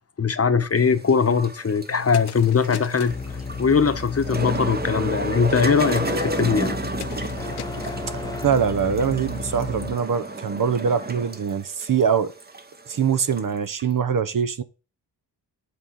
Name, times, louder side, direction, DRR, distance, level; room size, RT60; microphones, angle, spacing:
voice 1, 0.2-3.2 3.6-6.8, left 5 dB, 35° left, 1.1 m, -21 dB
sound 1, 0.8-13.9, right 2 dB, 20° right, 1.0 m, -32 dB
sound 2, 1.9-10.0, left 12 dB, 65° left, 0.6 m, -38 dB
sound 3, 3.1-10.0, left 3 dB, 10° left, 0.4 m, -34 dB
voice 2, 8.1-12.3 12.9-14.6, right 7 dB, 50° right, 0.9 m, -23 dB
8.1 x 3.8 x 6.4 m
cardioid pair, 70°, 42 cm